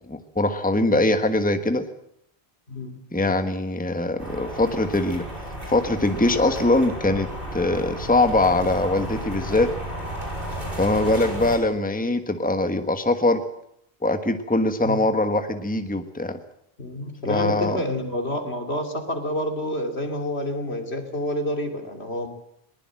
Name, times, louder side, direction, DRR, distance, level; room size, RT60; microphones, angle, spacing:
voice 1, 0.1-1.8 3.1-5.2 5.7-9.7 10.8-13.4 14.0-16.4 17.3-17.8, left 2 dB, 10° left, 8 dB, 1.3 m, -22 dB
voice 2, 2.7-3.0 14.8-15.0 16.8-22.3, left 1 dB, 75° left, 5 dB, 3.3 m, -28 dB
sound 1, 4.2-11.6, right 1 dB, 55° right, 6.1 m, -33 dB
21.5 x 20.5 x 7.7 m, 0.75 s
omnidirectional pair, 1.1 m